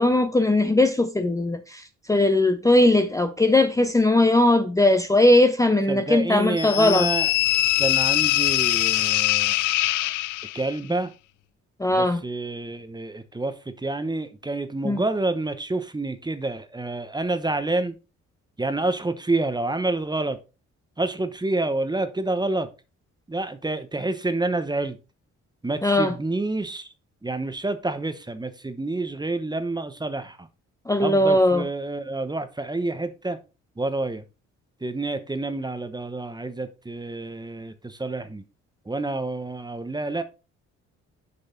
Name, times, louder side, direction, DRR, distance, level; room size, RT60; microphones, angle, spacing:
voice 1, 0.0-7.1 11.8-12.2 14.8-15.0 25.8-26.1 30.9-31.7, left 1 dB, 10° left, 0.7 m, -19 dB
voice 2, 5.9-7.3 7.8-9.5 10.5-11.1 11.9-17.9 18.6-20.4 21.0-22.7 23.3-25.0 25.6-26.9 27.2-30.5 31.0-33.4 33.8-34.2 34.8-38.4 38.9-40.2, right 2 dB, 15° right, 0.9 m, -28 dB
sound 1, 6.6-10.7, left 16 dB, 80° left, 0.5 m, -22 dB
6.8 x 5.4 x 4.1 m
cardioid pair, 90°, 30 cm